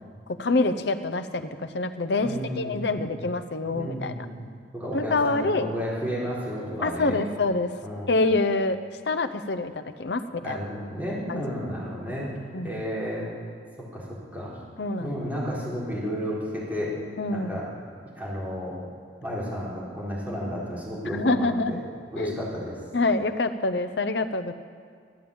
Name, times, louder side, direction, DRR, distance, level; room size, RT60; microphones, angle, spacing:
voice 1, 0.3-4.1 4.9-5.7 6.8-7.7 8.1-8.8 9.1-10.6 11.3-11.4 12.5-12.7 14.8-15.2 17.2-17.6 21.1-21.8 22.2-22.3 22.9-24.5, left 2 dB, 70° left, 9 dB, 0.7 m, -26 dB
voice 2, 2.2-3.2 3.7-4.4 4.7-7.2 7.8-8.1 10.4-12.3 12.6-13.3 13.9-14.5 15.0-16.9 17.3-17.7 18.2-18.8 19.2-21.8 22.1-22.8, equal, 10° right, -7 dB, 4.1 m, -32 dB
13.5 x 9.0 x 8.7 m, 2.1 s
head